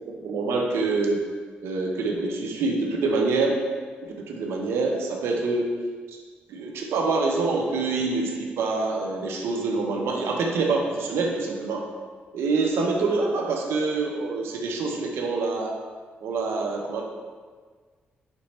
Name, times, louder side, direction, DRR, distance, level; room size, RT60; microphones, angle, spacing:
voice 1, 0.2-1.2 1.6-3.6 4.0-5.7 6.1-6.2 6.5-11.9 12.3-15.8 16.2-17.0, right 3 dB, 85° right, 1 dB, 0.5 m, -26 dB
5.1 x 2.9 x 3.2 m, 1.5 s
cardioid pair, 60°, 4 cm